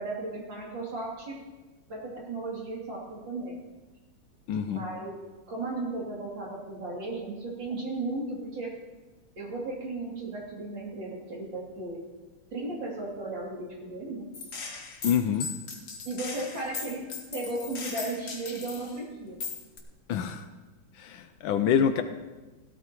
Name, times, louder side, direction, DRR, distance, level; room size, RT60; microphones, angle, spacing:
voice 1, 0.0-1.4 1.9-3.6 4.7-8.7 9.4-12.0 12.5-14.2 16.0-19.4, right 2 dB, 55° right, -4 dB, 3.5 m, -35 dB
voice 2, 4.5-4.8 15.0-15.5 20.1-20.4 21.0-22.0, left 8 dB, 75° left, 9 dB, 1.3 m, -26 dB
Gunshot gunfire, 14.3-19.0 19.4-19.8, left 4 dB, 50° left, 1.8 m, -38 dB
16.5 x 12.5 x 3.0 m, 1.2 s
omnidirectional pair, 2.4 m